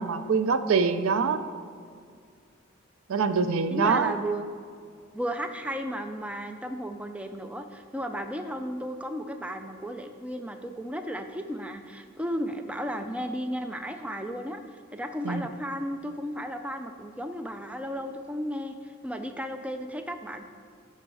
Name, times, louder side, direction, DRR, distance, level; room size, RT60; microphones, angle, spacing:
voice 1, 0.0-1.4 3.1-4.1 15.2-15.4, right 5 dB, 85° right, 11 dB, 0.5 m, -24 dB
voice 2, 3.7-4.4 5.1-20.4, equal, 5° right, 6 dB, 0.4 m, -34 dB
12.0 x 4.2 x 4.8 m, 2.2 s
head